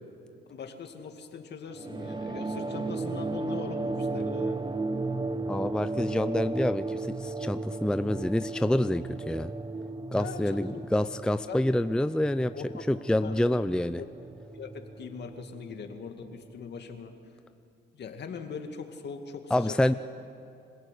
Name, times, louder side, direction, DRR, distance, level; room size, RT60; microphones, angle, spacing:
voice 1, 0.5-4.6 10.2-10.8 11.5-11.6 12.5-12.7 13.2-13.5 14.6-17.1 17.9-19.8, left 6 dB, 60° left, 5 dB, 2.2 m, -41 dB
sound 1, 1.7-16.6, right 3 dB, 20° right, 0.9 m, -35 dB
voice 2, 5.5-9.5 10.1-12.5 12.9-14.0 19.5-19.9, left 1 dB, 5° left, 11 dB, 0.5 m, -27 dB
26.5 x 16.5 x 8.3 m, 2.5 s
cardioid pair, 90°, 20 cm